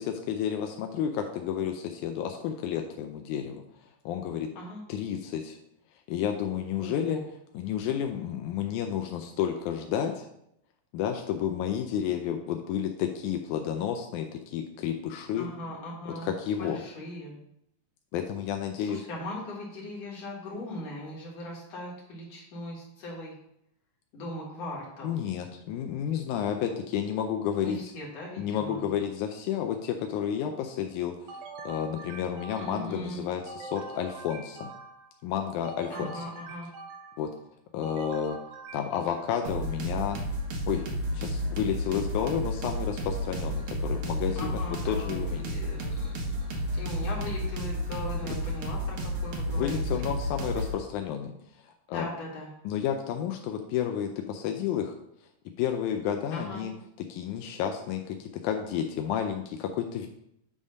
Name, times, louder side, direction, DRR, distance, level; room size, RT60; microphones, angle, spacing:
voice 1, 0.0-3.6 4.1-4.5 4.9-5.6 6.1-7.2 7.5-10.3 10.9-15.5 16.2-16.8 18.1-19.0 25.0-27.8 28.4-34.7 35.2-36.2 37.2-37.3 37.7-38.4 38.7-40.2 40.7-40.8 41.1-45.4 48.2-48.3 49.5-51.3 51.6-52.1 52.7-54.9 55.6-56.7 57.1-60.1, left 9 dB, 80° left, 4 dB, 1.8 m, -31 dB
voice 2, 6.8-7.2 15.4-17.4 18.8-23.3 24.1-25.2 27.6-28.8 32.5-33.2 35.9-36.7 44.3-50.1 51.9-52.5 56.3-56.7, left 1 dB, 50° left, -4 dB, 2.8 m, -39 dB
sound 1, 31.3-32.9 33.5-35.2 35.6-37.3 37.8-39.5, right 4 dB, 85° right, 2.6 m, -43 dB
sound 2, 39.4-50.7, equal, 65° right, 1.4 m, -32 dB
8.6 x 3.5 x 5.3 m, 0.77 s
omnidirectional pair, 4.1 m